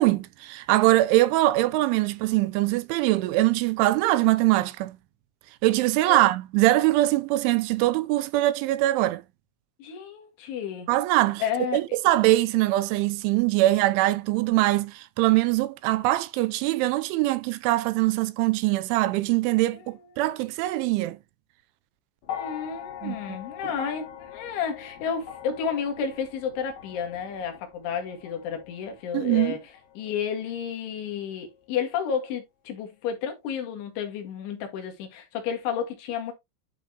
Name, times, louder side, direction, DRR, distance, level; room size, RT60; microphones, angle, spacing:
voice 1, 0.0-5.0 5.6-9.2 10.9-11.4 11.7-21.2 23.0-23.2 23.6-23.7 29.1-29.6, right 17 dB, 90° right, 3.1 m, -22 dB
voice 2, 9.8-10.9 11.4-11.8 19.8-20.0 22.3-29.6 30.0-36.3, left 7 dB, 85° left, 4.3 m, -31 dB
sound 1, 22.2-30.6 31.6-31.7, left 10 dB, 50° left, 2.5 m, -42 dB
11.0 x 4.5 x 3.0 m
omnidirectional pair, 5.4 m